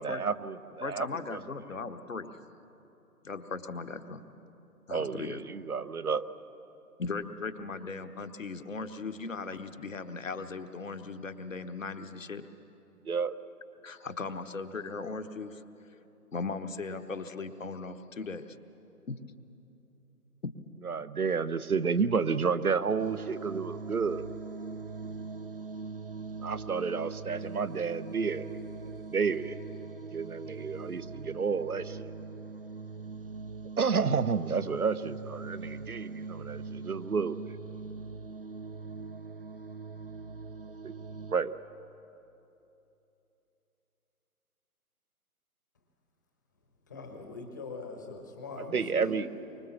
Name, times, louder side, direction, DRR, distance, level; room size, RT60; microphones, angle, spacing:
voice 1, 0.0-1.1 1.3-1.4 4.9-6.2 13.1-13.3 20.8-24.3 26.4-28.4 29.1-29.6 30.1-32.1 33.8-37.5 40.8-40.9 41.3-41.5 48.6-49.3, right 5 dB, 70° right, 13 dB, 0.9 m, -30 dB
voice 2, 0.8-2.3 3.2-4.2 4.9-5.4 7.0-12.4 13.8-15.6 16.3-18.6 19.1-19.2 20.4-20.5, left 4 dB, 55° left, 8 dB, 1.2 m, -38 dB
sound 1, 23.0-41.3, right 4 dB, 40° right, 0.5 m, -42 dB
voice 3, 46.9-49.2, left 3 dB, 15° left, 3 dB, 1.0 m, -42 dB
24.5 x 23.5 x 7.3 m, 2.9 s
figure-of-eight pair, 145°, 45 cm